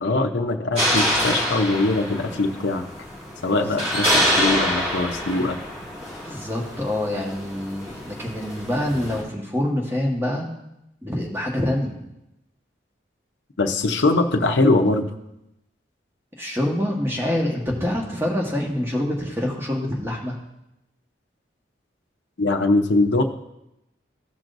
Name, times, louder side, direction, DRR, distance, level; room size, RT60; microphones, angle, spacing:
voice 1, 0.0-2.8 3.4-5.6 13.6-15.1 22.4-23.2, left 2 dB, 75° left, 5 dB, 0.7 m, -21 dB
sound 1, 0.7-9.2, equal, 35° right, 3.1 m, -26 dB
voice 2, 6.2-10.5 11.0-11.9 16.4-20.4, left 1 dB, 15° right, -1 dB, 1.3 m, -26 dB
15.0 x 6.0 x 2.6 m, 0.86 s
head